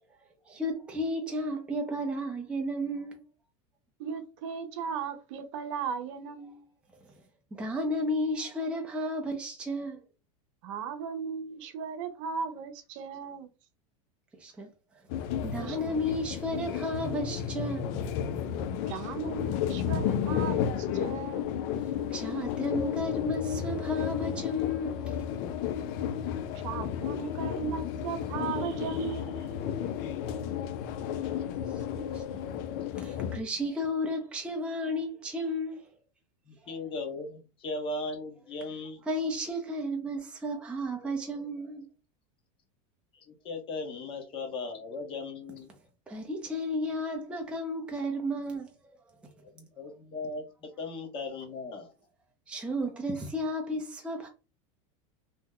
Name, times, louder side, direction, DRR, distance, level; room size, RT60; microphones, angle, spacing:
voice 1, 0.5-3.2 7.5-10.0 14.4-14.7 15.4-18.2 22.1-25.2 31.6-31.7 32.0-32.2 33.0-35.8 39.1-41.8 46.1-48.7 52.5-54.3, equal, 5° right, 0.5 m, -33 dB
voice 2, 4.0-6.7 10.6-13.5 15.6-16.0 18.9-21.5 26.6-29.5, right 6 dB, 65° right, 0.7 m, -37 dB
sound 1, 15.1-33.4, left 8 dB, 50° left, 0.4 m, -32 dB
voice 3, 36.5-39.0 43.1-45.7 49.5-51.9, left 3 dB, 30° left, 1.0 m, -37 dB
2.8 x 2.1 x 3.6 m
supercardioid pair, 145°, 17 cm